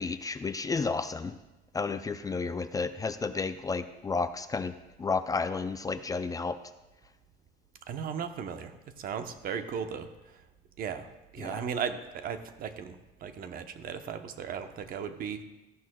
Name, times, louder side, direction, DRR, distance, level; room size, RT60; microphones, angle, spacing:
voice 1, 0.0-1.4 1.7-6.6 11.4-11.6, left 4 dB, 20° left, 11 dB, 0.4 m, -32 dB
voice 2, 7.9-10.1 10.8-11.1 11.3-15.4, right 7 dB, 60° right, 8 dB, 0.8 m, -36 dB
14.0 x 11.0 x 2.2 m, 1.0 s
cardioid pair, 110°, 17 cm